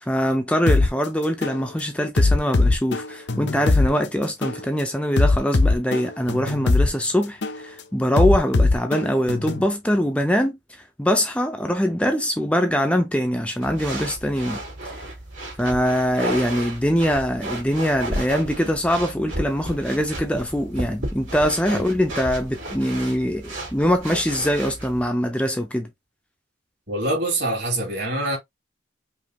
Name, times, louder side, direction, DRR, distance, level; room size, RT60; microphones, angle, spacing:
voice 1, 0.0-10.6 11.0-14.6 15.6-25.9, equal, 5° left, 0.5 m, -23 dB
sound 1, 0.7-0.9 1.4-1.6 2.2-3.9 4.4-4.6 5.2-6.9 7.4-7.6 8.2-9.7, left 3 dB, 65° left, 0.7 m, -19 dB
sound 2, 13.6-25.1, right 1 dB, 85° right, 2.8 m, -33 dB
voice 2, 26.9-28.4, right 1 dB, 60° right, 2.7 m, -25 dB
5.2 x 2.8 x 2.8 m
head